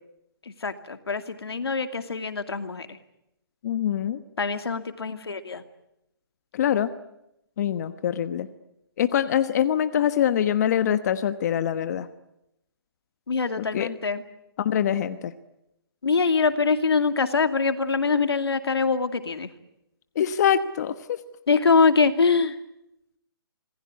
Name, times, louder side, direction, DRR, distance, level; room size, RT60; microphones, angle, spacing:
voice 1, 0.6-3.0 4.4-5.6 13.3-14.2 16.0-19.5 21.5-22.6, left 4 dB, 90° left, 8 dB, 2.5 m, -23 dB
voice 2, 3.6-4.2 6.5-6.9 7.6-8.5 9.0-12.1 13.6-13.9 14.6-15.3 20.1-21.2, left 9 dB, 45° left, 11 dB, 1.2 m, -24 dB
26.5 x 20.0 x 9.6 m, 0.84 s
hypercardioid pair, 155°, 13 cm